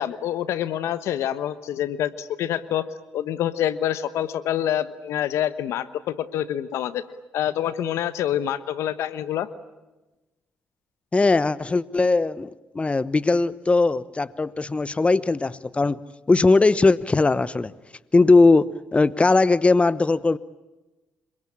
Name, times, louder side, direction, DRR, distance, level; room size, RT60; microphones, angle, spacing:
voice 1, 0.0-2.9 3.1-7.0 7.3-9.5, left 11 dB, 75° left, 14 dB, 1.2 m, -26 dB
voice 2, 11.1-16.0 16.3-17.7 18.1-20.4, left 3 dB, 25° left, 17 dB, 1.0 m, -19 dB
26.5 x 23.5 x 8.8 m, 1.1 s
supercardioid pair, 55°, 5 cm